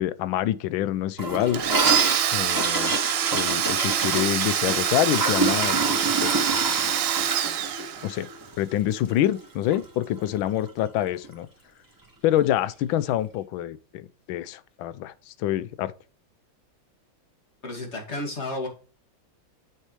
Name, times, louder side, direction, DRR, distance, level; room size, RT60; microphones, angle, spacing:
voice 1, 0.0-1.6 2.3-3.0 3.3-5.8 6.2-6.5 8.0-8.3 8.6-11.5 12.2-15.9, left 12 dB, 85° left, 1.4 m, -26 dB
Gurgling / Toilet flush, 1.2-9.4 9.7-9.8 10.1-10.6 10.8-10.9 11.2-11.3 12.3-12.4, right 2 dB, 10° right, 1.4 m, -28 dB
Domestic sounds home sounds, 1.5-8.3, right 10 dB, 85° right, 1.6 m, -25 dB
voice 2, 17.6-18.7, left 2 dB, 35° left, 2.3 m, -32 dB
7.3 x 6.8 x 3.1 m
omnidirectional pair, 2.1 m